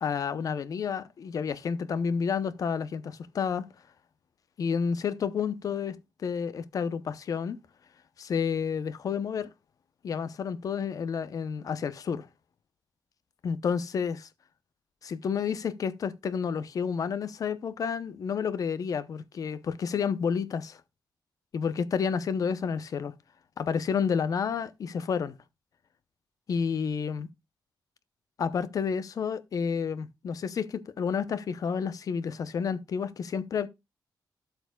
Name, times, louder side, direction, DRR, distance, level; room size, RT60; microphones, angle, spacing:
voice 1, 0.0-3.6 4.6-7.6 8.2-9.5 10.0-12.3 13.4-14.3 15.0-20.8 21.5-23.1 23.6-25.3 26.5-27.3 28.4-33.7, left 6 dB, 50° left, 0.7 m, -30 dB
12.5 x 6.9 x 2.3 m
wide cardioid pair, 165°, 8 cm